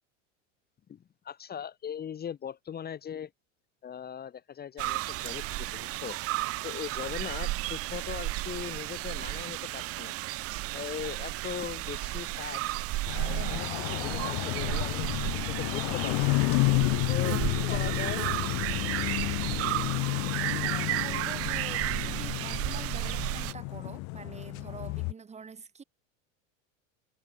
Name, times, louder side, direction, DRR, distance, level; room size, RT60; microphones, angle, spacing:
voice 1, 0.9-3.3 3.8-6.2 6.6-10.2 10.7-12.6 13.1-15.1 15.5-16.4 17.1-18.2, left 8 dB, 25° left, 1.6 m, -39 dB
sound 1, 4.8-23.5, right 18 dB, 40° right, 0.7 m, -33 dB
sound 2, 13.1-25.1, left 28 dB, 55° left, 1.4 m, -31 dB
voice 2, 20.4-25.8, right 5 dB, 15° right, 2.3 m, -45 dB
supercardioid pair, 125°, 37 cm